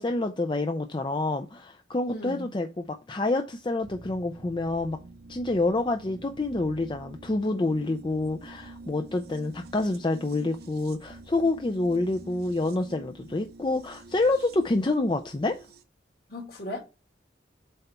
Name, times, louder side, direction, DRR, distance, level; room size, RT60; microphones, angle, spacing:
voice 1, 0.0-5.0 5.3-15.6, left 2 dB, 25° left, 0.4 m, -27 dB
voice 2, 2.1-2.5 16.3-16.8, left 1 dB, 55° left, 2.2 m, -36 dB
sound 1, 3.8-15.8, right 2 dB, 55° right, 0.7 m, -48 dB
7.7 x 3.4 x 4.3 m
head